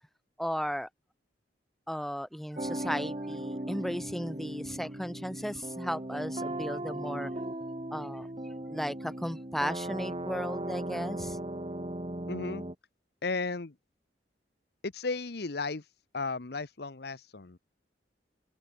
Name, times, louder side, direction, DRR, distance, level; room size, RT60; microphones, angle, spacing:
voice 1, 0.4-0.9 1.9-7.3 7.9-8.3 8.7-11.4, equal, ahead, 2.8 m, -35 dB
sound 1, 2.5-12.7, right 1 dB, 30° right, 1.7 m, -37 dB
voice 2, 12.3-12.6 13.2-13.7 14.8-15.9 16.1-17.6, left 3 dB, 65° left, 0.9 m, -34 dB
head